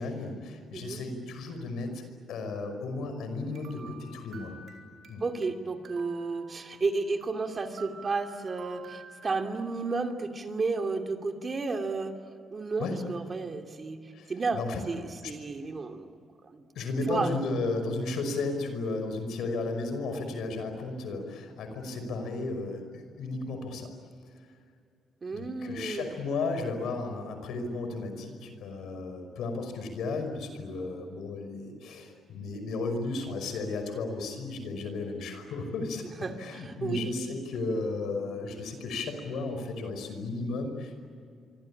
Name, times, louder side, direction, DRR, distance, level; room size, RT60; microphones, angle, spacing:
voice 1, 0.0-4.5 5.1-5.2 12.8-13.0 14.1-14.8 15.2-15.3 16.8-23.9 25.3-36.0 36.4-41.0, left 3 dB, 80° left, 7 dB, 5.6 m, -34 dB
sound 1, 3.6-5.5 5.9-6.9 7.2-9.5, right 5 dB, 65° right, 4.4 m, -50 dB
voice 2, 5.2-12.2 12.5-16.1 16.4-16.7 17.0-17.4 25.2-26.1 36.0-37.1, right 3 dB, 35° right, 5 dB, 2.8 m, -32 dB
26.0 x 24.5 x 8.8 m, 2.3 s
cardioid pair, 90°, 0 cm